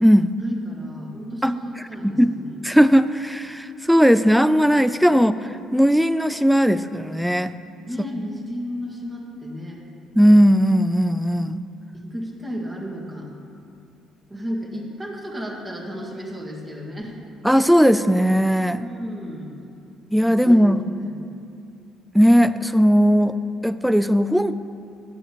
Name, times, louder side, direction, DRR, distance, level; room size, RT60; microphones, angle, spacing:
voice 1, 0.4-2.5 7.9-9.8 11.9-13.3 14.3-17.2 18.8-19.5 20.3-21.3, equal, 20° right, -1 dB, 1.6 m, -33 dB
voice 2, 2.0-2.4 2.6-7.5 10.1-11.6 17.4-18.8 20.1-20.8 22.1-23.4 23.6-24.5, equal, ahead, 13 dB, 0.3 m, -17 dB
13.5 x 9.6 x 3.0 m, 2.5 s
cardioid pair, 110°, 0 cm